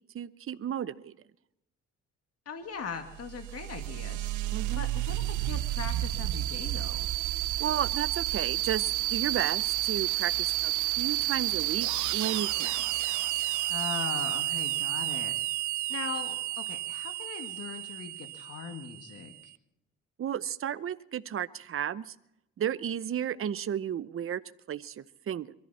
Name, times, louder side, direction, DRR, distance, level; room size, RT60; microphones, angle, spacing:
voice 1, 0.1-1.1 4.5-4.8 7.6-12.8 20.2-22.1 22.6-24.4 24.7-25.0 25.3-25.5, right 9 dB, 45° right, 13 dB, 0.8 m, -33 dB
voice 2, 2.5-4.3 4.8-7.1 13.7-15.4 15.9-19.3, left 5 dB, 55° left, 6 dB, 2.2 m, -40 dB
sound 1, 3.0-19.4, right 15 dB, 80° right, 0.6 m, -31 dB
23.0 x 14.0 x 4.3 m, 0.85 s
cardioid pair, 90°, 30 cm